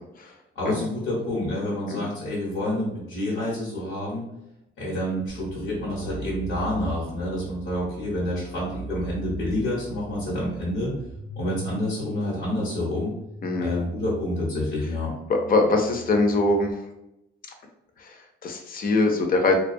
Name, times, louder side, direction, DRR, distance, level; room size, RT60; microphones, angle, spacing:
voice 1, 0.5-4.3 4.8-11.0 11.4-13.1 13.6-15.1, left 1 dB, 85° left, -7 dB, 1.0 m, -28 dB
sound 1, 5.3-16.7, right 3 dB, 15° right, 0.4 m, -40 dB
voice 2, 13.4-13.8 15.3-16.7 18.0-19.5, left 2 dB, 45° left, 4 dB, 0.5 m, -23 dB
2.3 x 2.2 x 2.6 m, 0.87 s
cardioid pair, 90°, 20 cm